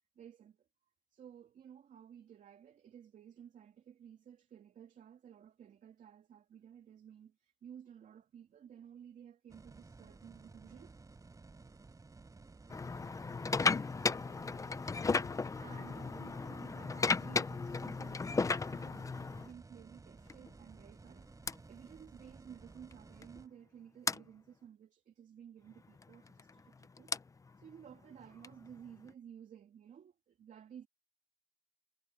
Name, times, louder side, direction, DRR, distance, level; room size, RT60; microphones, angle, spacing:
voice 1, 0.1-0.7 1.1-10.9 15.5-27.1 27.6-30.9, right 8 dB, 50° right, 2.9 m, -55 dB
sound 1, 9.5-23.5, right 3 dB, 20° right, 5.1 m, -56 dB
sound 2, 12.7-19.5 20.3-20.5 21.5-21.6 22.9-23.0 23.2-23.4 24.1-24.2 26.0-29.1, left 4 dB, 20° left, 0.7 m, -35 dB
cardioid pair, 110°, 17 cm